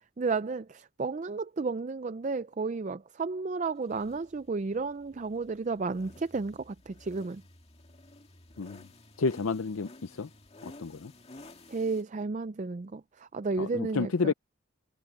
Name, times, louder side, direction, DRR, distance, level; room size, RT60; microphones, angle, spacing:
voice 1, 0.2-7.4 11.7-14.3, right 4 dB, 35° right, 0.4 m, -32 dB
sound 1, 3.9-12.0, left 2 dB, 30° left, 2.2 m, -53 dB
voice 2, 8.6-8.9 9.2-10.3 10.6-11.1 13.6-14.3, left 4 dB, 75° left, 0.6 m, -30 dB
head